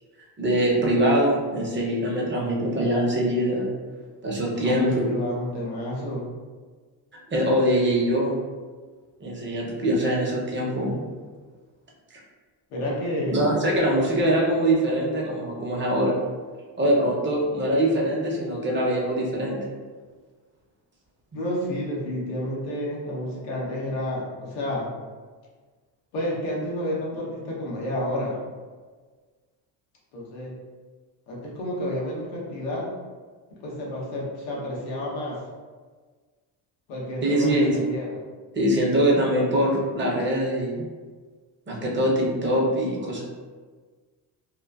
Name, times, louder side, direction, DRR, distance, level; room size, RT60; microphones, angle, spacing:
voice 1, 0.4-3.7 4.2-5.1 7.3-8.4 9.2-11.1 12.1-12.2 13.3-16.2 16.8-19.6 37.2-37.7 38.5-40.9 41.7-43.2, right 1 dB, 25° right, -2 dB, 0.7 m, -23 dB
voice 2, 4.6-6.3 12.7-13.4 21.3-24.9 26.1-28.4 30.1-30.5 31.3-32.9 33.6-35.4 36.9-38.2, left 1 dB, 90° left, -4 dB, 0.9 m, -30 dB
3.0 x 2.1 x 2.4 m, 1.5 s
supercardioid pair, 80°, 45 cm